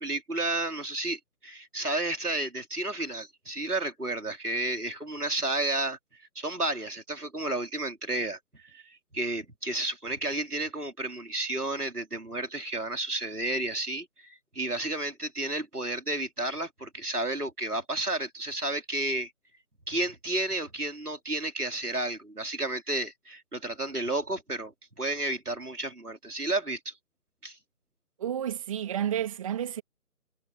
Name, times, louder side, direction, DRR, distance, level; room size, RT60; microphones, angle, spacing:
voice 1, 0.0-6.0 6.3-8.4 8.7-8.8 9.1-19.3 19.9-24.7 25.0-26.9 27.4-27.6, right 2 dB, 85° right, 4.7 m, -32 dB
voice 2, 28.2-29.8, right 10 dB, 20° right, 2.4 m, -31 dB
figure-of-eight pair, 150°, 45 cm